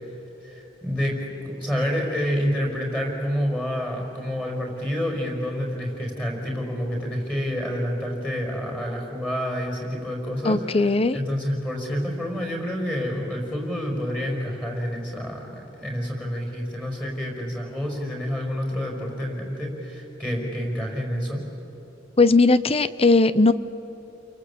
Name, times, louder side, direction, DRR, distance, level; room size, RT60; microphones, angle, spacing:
voice 1, 0.4-10.9 11.1-21.4, equal, 10° left, 1 dB, 5.3 m, -28 dB
voice 2, 10.4-11.2 22.2-23.5, left 3 dB, 30° left, 14 dB, 0.8 m, -18 dB
29.5 x 23.0 x 8.5 m, 3.0 s
head